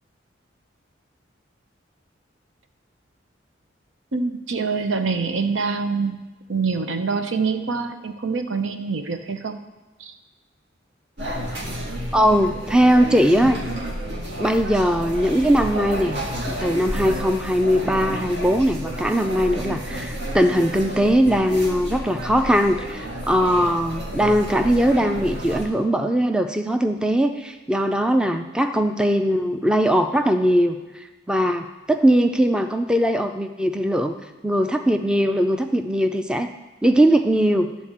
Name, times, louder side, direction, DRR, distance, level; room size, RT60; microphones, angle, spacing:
voice 1, 4.1-6.2 6.5-9.6 10.0-10.1, right 4 dB, 85° right, 7 dB, 0.8 m, -25 dB
sound 1, 11.2-25.7, equal, 65° right, 1.7 m, -31 dB
voice 2, 12.1-13.6 14.4-16.2 16.5-34.1 34.4-36.5 36.8-37.7, equal, 5° right, 6 dB, 0.4 m, -20 dB
11.5 x 4.2 x 7.4 m, 1.2 s
head